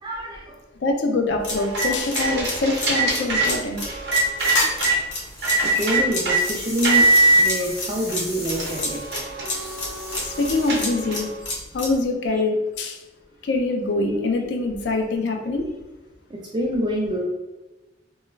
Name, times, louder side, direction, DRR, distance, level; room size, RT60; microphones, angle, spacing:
voice 1, 0.0-0.6 5.4-7.1 7.4-9.2 16.3-17.2, equal, 25° right, -2 dB, 0.3 m, -26 dB
voice 2, 0.8-3.8 10.1-13.0 13.4-15.6, left 3 dB, 70° left, 4 dB, 0.4 m, -24 dB
sound 1, 1.4-11.9, left 2 dB, 85° left, 0.9 m, -28 dB
sound 2, 1.5-5.0 5.4-6.4 6.8-7.4 8.1-8.2 8.5-11.3, right 2 dB, 65° right, 0.7 m, -22 dB
sound 3, 4.4-4.9 5.2-11.0, left 1 dB, ahead, 1.3 m, -38 dB
2.3 x 2.2 x 3.1 m, 1.1 s
head